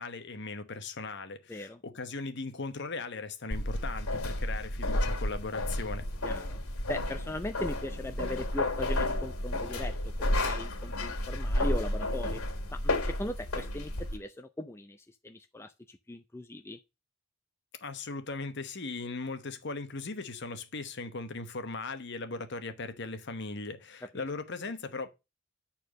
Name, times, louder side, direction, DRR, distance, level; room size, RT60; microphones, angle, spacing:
voice 1, 0.0-6.1 17.8-25.1, left 3 dB, 55° left, 1.1 m, -38 dB
voice 2, 1.5-1.8 6.2-6.6 6.9-12.4 12.7-16.8 24.1-24.2, left 1 dB, 10° left, 0.4 m, -39 dB
sound 1, 3.5-14.2, left 1 dB, 90° left, 2.2 m, -32 dB
8.7 x 4.4 x 6.3 m
head